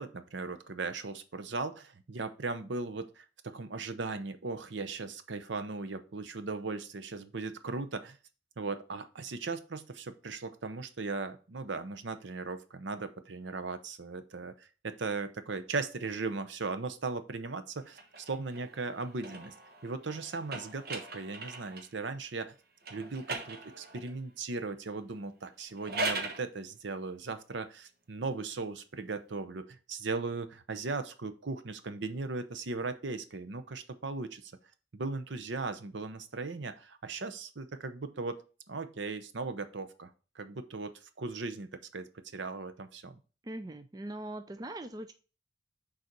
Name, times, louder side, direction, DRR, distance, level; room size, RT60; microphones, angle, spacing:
voice 1, 0.0-8.2 8.6-19.5 19.8-22.5 22.9-34.5 34.9-43.2, right 3 dB, 70° right, 11 dB, 0.8 m, -38 dB
sound 1, 17.9-22.0 22.8-24.2 25.6-26.4, right 2 dB, 55° right, 1.3 m, -39 dB
voice 2, 43.4-45.1, right 1 dB, 20° right, 9 dB, 0.4 m, -41 dB
6.6 x 4.1 x 4.5 m, 0.34 s
head